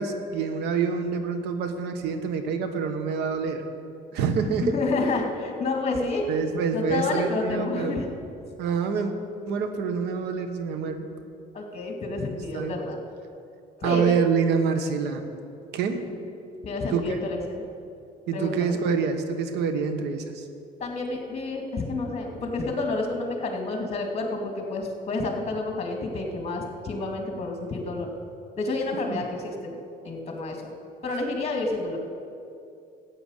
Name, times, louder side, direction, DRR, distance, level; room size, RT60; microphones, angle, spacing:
voice 1, 0.0-3.6 4.1-4.7 6.3-8.0 8.6-9.1 9.5-11.0 12.2-12.3 12.5-12.8 13.8-15.2 15.7-16.1 16.9-17.2 18.3-20.4 29.1-29.2, right 6 dB, 85° right, 8 dB, 1.3 m, -26 dB
voice 2, 4.5-6.3 6.7-8.1 11.5-13.0 13.8-14.2 16.6-17.6 18.3-18.8 20.8-28.1 28.6-29.7 30.0-30.7 31.0-32.0, left 3 dB, 40° left, 2 dB, 2.4 m, -29 dB
14.0 x 9.0 x 6.6 m, 2.5 s
cardioid pair, 110°, 17 cm